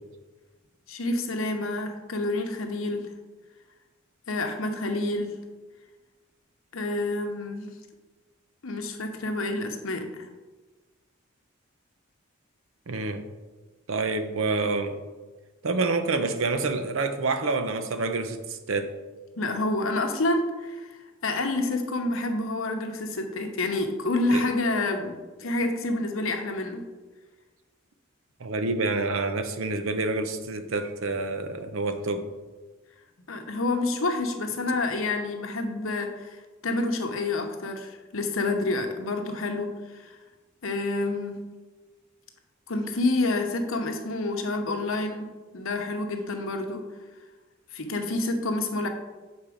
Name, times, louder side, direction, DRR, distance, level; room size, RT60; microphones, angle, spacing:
voice 1, 0.9-3.1 4.3-5.4 6.7-7.7 8.6-10.3 19.4-26.8 33.3-40.2 40.6-41.4 42.7-45.3 45.5-46.9 47.7-48.9, left 2 dB, 75° left, 5 dB, 0.9 m, -28 dB
voice 2, 12.9-13.3 13.9-15.0 15.6-18.9 24.3-24.4 28.4-32.3, right 3 dB, 70° right, 8 dB, 0.7 m, -27 dB
7.3 x 4.2 x 5.0 m, 1.3 s
head